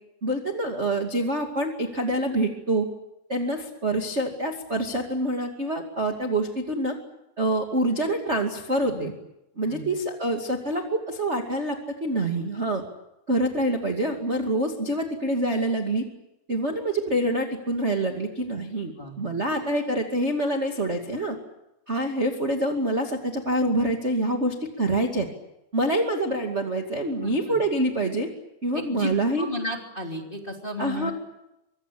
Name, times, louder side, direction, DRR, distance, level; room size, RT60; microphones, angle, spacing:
voice 1, 0.2-2.9 3.3-7.0 7.4-9.1 9.6-12.8 13.3-16.1 16.5-21.4 21.9-25.3 25.7-28.3 28.6-29.5 30.8-31.1, right 1 dB, 25° right, 2 dB, 1.8 m, -26 dB
voice 2, 27.2-27.6 28.7-31.1, left 1 dB, 15° left, 1 dB, 2.6 m, -34 dB
25.5 x 23.5 x 8.6 m, 0.87 s
omnidirectional pair, 4.5 m